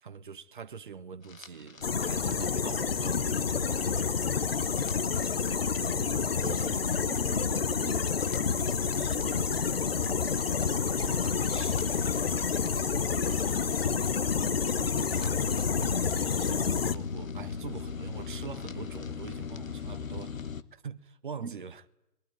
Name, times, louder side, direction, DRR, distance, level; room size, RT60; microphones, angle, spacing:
voice 1, 0.0-4.2 5.9-6.8 9.0-10.4 10.8-12.0 14.9-20.4 20.7-21.8, right 6 dB, 30° right, 1.1 m, -44 dB
sound 1, 1.2-20.6, left 6 dB, 55° left, 1.3 m, -39 dB
sound 2, 1.8-17.0, left 6 dB, 40° left, 0.9 m, -29 dB
voice 2, 6.3-6.7 7.1-8.4 13.1-14.0 21.4-21.6, right 5 dB, 85° right, 1.9 m, -46 dB
22.0 x 19.5 x 9.7 m
figure-of-eight pair, 155°, 47 cm